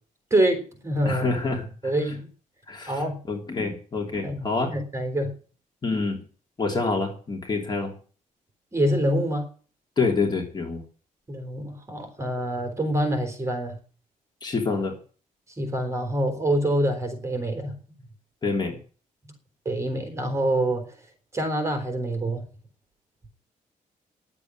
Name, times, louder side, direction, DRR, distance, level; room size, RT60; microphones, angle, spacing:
voice 1, 0.3-1.2 1.8-2.3 2.9-3.2 4.2-5.3 8.7-9.5 11.3-13.8 15.6-17.7 19.7-20.8 21.3-22.5, right 1 dB, 20° right, 5 dB, 3.7 m, -26 dB
voice 2, 1.1-1.9 2.7-4.7 5.8-6.2 6.6-7.9 10.0-10.8 14.4-15.0 18.4-18.8, left 3 dB, 30° left, 2 dB, 3.5 m, -27 dB
11.0 x 8.5 x 9.7 m, 0.40 s
wide cardioid pair, 155°, 14 cm